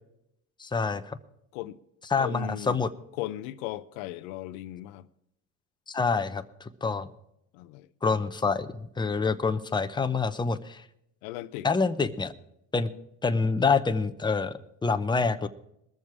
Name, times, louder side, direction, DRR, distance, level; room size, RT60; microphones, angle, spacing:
voice 1, 0.6-1.2 2.1-2.9 5.9-7.1 8.0-10.8 11.6-12.3 12.7-12.9 13.2-14.5 14.8-15.5, left 4 dB, 10° left, 0.8 m, -26 dB
voice 2, 2.2-2.8 3.2-5.1 7.5-7.9 11.2-11.7, left 14 dB, 90° left, 0.7 m, -37 dB
21.5 x 7.2 x 4.7 m
supercardioid pair, 95°, 41 cm